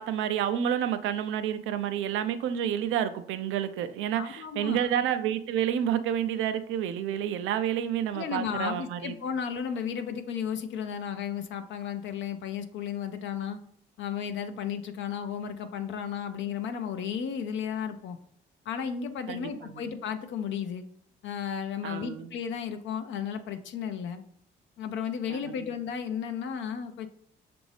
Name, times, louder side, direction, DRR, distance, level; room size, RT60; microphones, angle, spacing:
voice 1, 0.0-9.1 19.3-19.8 21.8-22.3 25.3-25.7, right 10 dB, 85° right, 11 dB, 0.4 m, -29 dB
voice 2, 4.1-4.9 8.1-13.6 14.0-18.2 18.7-20.9 21.2-24.2 24.8-27.1, left 7 dB, 70° left, 8 dB, 0.4 m, -34 dB
6.1 x 2.6 x 3.2 m, 0.67 s
cardioid pair, 90°, 20 cm